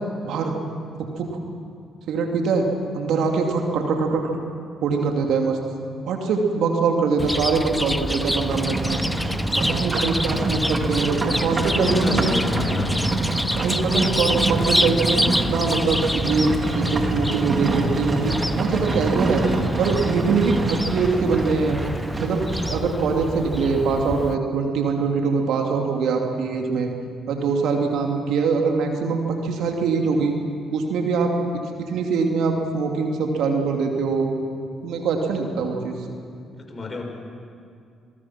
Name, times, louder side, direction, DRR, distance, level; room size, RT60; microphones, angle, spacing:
voice 1, 0.2-0.6 1.1-1.4 2.1-2.7 2.9-4.3 4.8-5.6 6.1-9.3 9.6-12.4 13.6-19.4 19.8-21.8 22.2-26.9 27.3-30.4 30.7-34.3 34.8-36.0, right 4 dB, 70° right, 2 dB, 2.8 m, -23 dB
Chirp tweet, 7.2-24.3, left 1 dB, 5° left, 0.8 m, -27 dB
Livestock farm animals working animals, 8.2-22.8, right 2 dB, 40° right, 3.0 m, -27 dB
voice 2, 11.4-13.1 36.7-37.0, left 2 dB, 35° left, 2 dB, 5.8 m, -29 dB
26.5 x 22.0 x 6.1 m, 2.3 s
hypercardioid pair, 50°, 0 cm